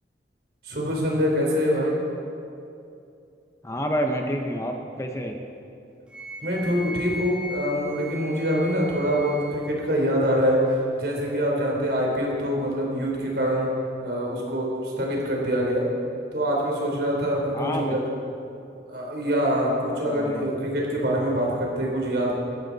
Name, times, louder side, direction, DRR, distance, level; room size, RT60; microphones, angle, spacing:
voice 1, 0.6-2.0 6.4-13.7 14.0-15.9 16.3-18.0 18.9-22.4, equal, 70° right, -2 dB, 3.6 m, -25 dB
voice 2, 3.6-5.4 17.5-18.0 20.0-20.5, equal, 15° left, 3 dB, 0.8 m, -28 dB
Wind instrument woodwind instrument, 6.1-9.8, left 1 dB, 5° right, 1.9 m, -38 dB
17.5 x 13.5 x 4.1 m, 2.6 s
head